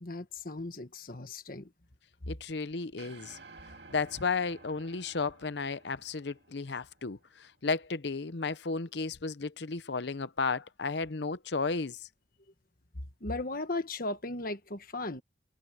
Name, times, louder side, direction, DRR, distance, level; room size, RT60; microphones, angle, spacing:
voice 1, 0.0-1.7 2.2-2.3 13.2-15.2, left 2 dB, 50° left, 1.5 m, -36 dB
voice 2, 2.3-3.4 3.9-12.1, left 4 dB, 65° left, 0.8 m, -33 dB
sound 1, 3.0-7.4, right 3 dB, 60° right, 2.2 m, -54 dB
head